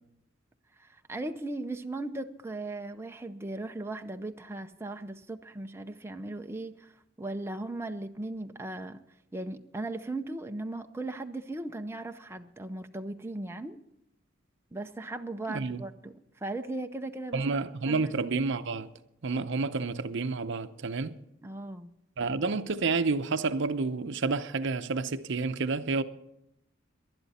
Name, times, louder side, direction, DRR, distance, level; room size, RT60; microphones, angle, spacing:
voice 1, 0.8-9.0 9.3-13.8 14.7-17.5 17.9-18.1 21.4-21.9, right 2 dB, 10° right, 0.6 m, -37 dB
voice 2, 15.5-15.8 17.3-18.9 19.2-21.2 22.2-26.0, right 4 dB, 60° right, 0.7 m, -29 dB
19.5 x 11.5 x 4.2 m
head